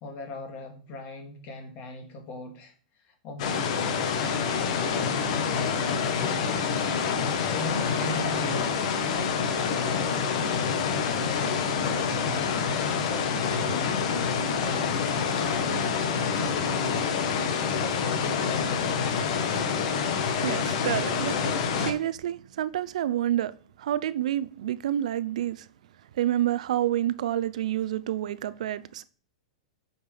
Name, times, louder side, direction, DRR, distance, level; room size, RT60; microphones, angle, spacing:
voice 1, 0.0-2.7 3.1-4.1 4.8-5.5 5.8-6.7 7.4-12.5 12.8-14.0 14.6-17.2 17.6-18.8, left 2 dB, 40° left, 2.6 m, -40 dB
sound 1, 3.4-21.9, left 6 dB, 60° left, 1.4 m, -27 dB
voice 2, 20.4-21.5 21.8-23.5 23.8-25.6 26.2-29.0, right 12 dB, 70° right, 0.6 m, -28 dB
9.5 x 5.8 x 3.5 m
hypercardioid pair, 110°, 4 cm